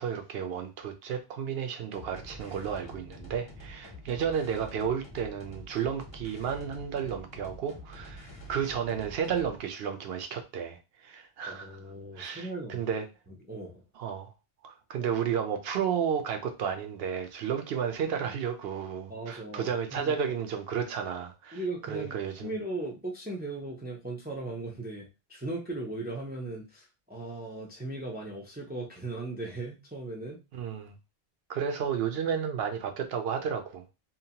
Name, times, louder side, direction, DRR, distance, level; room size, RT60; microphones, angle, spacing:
voice 1, 0.0-11.7 12.2-13.0 14.0-14.3 14.6-21.6 21.9-22.5 30.5-30.9 31.5-33.8, right 7 dB, 70° right, 0.8 m, -32 dB
sound 1, 1.9-9.6, equal, 30° left, 0.7 m, -47 dB
voice 2, 11.5-12.8 13.3-13.8 19.1-20.1 21.5-30.4, right 2 dB, 15° right, 0.4 m, -38 dB
2.7 x 2.1 x 2.8 m
omnidirectional pair, 1.1 m